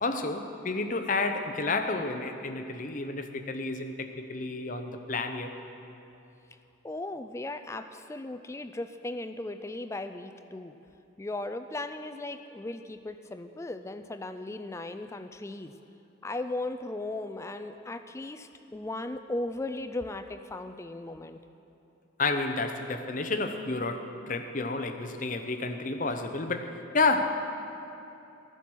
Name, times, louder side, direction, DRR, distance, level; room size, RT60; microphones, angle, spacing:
voice 1, 0.0-5.5 22.2-27.2, left 3 dB, 40° left, 6 dB, 0.7 m, -30 dB
voice 2, 6.8-10.8 11.2-15.8 16.2-21.4, left 2 dB, 15° left, 9 dB, 0.3 m, -37 dB
14.0 x 9.9 x 6.1 m, 2.8 s
head